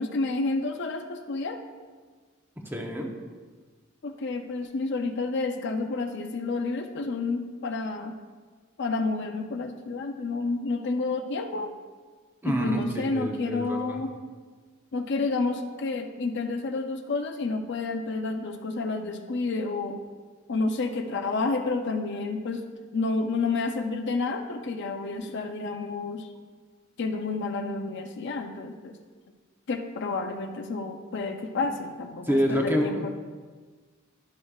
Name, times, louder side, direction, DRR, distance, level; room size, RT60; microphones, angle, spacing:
voice 1, 0.0-1.6 4.0-8.1 8.8-11.7 12.4-14.1 14.9-20.0 20.5-22.6 22.9-26.3 27.0-29.0 29.7-33.1, left 3 dB, 60° left, 6 dB, 0.5 m, -30 dB
voice 2, 2.6-3.1 12.4-14.0 32.2-33.1, equal, 10° right, 1 dB, 0.8 m, -27 dB
11.0 x 6.3 x 2.4 m, 1.5 s
head